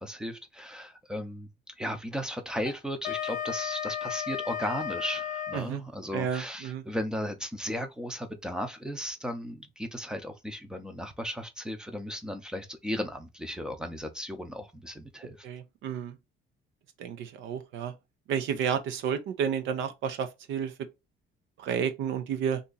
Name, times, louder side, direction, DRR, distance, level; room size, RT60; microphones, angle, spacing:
voice 1, 0.0-15.4, equal, 5° right, 0.6 m, -36 dB
Wind instrument woodwind instrument, 2.6-5.7, left 8 dB, 45° left, 0.5 m, -34 dB
voice 2, 6.1-6.8 15.4-16.2 17.0-17.9 18.3-20.7 21.6-22.6, right 7 dB, 80° right, 0.6 m, -31 dB
2.8 x 2.6 x 3.7 m
cardioid pair, 150°, 19 cm